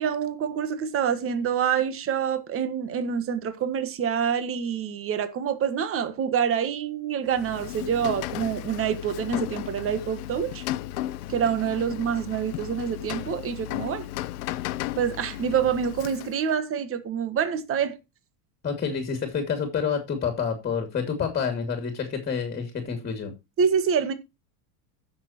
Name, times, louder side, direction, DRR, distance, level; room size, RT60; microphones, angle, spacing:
voice 1, 0.0-10.6 11.3-14.1 15.0-18.0 23.6-24.1, right 7 dB, 30° right, 1.5 m, -26 dB
Rain, 7.3-16.5, left 14 dB, 75° left, 0.9 m, -35 dB
voice 2, 18.6-23.3, left 6 dB, 20° left, 2.5 m, -28 dB
15.5 x 6.6 x 2.9 m
supercardioid pair, 135°, 46 cm